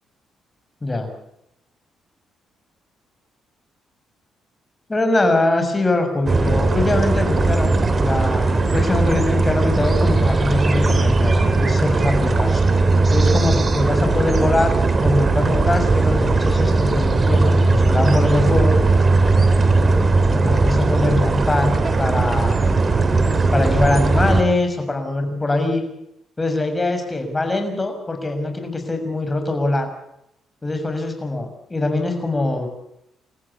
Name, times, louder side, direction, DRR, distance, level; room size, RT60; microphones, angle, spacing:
voice 1, 4.9-12.6 13.1-18.8 19.9-20.0 20.3-22.7 23.5-25.8 26.4-29.9 30.6-32.7, left 2 dB, 20° left, 6 dB, 6.5 m, -22 dB
sound 1, 6.3-24.4, right 3 dB, 35° right, 2.9 m, -18 dB
28.5 x 14.5 x 8.6 m, 0.82 s
cardioid pair, 90°, 0 cm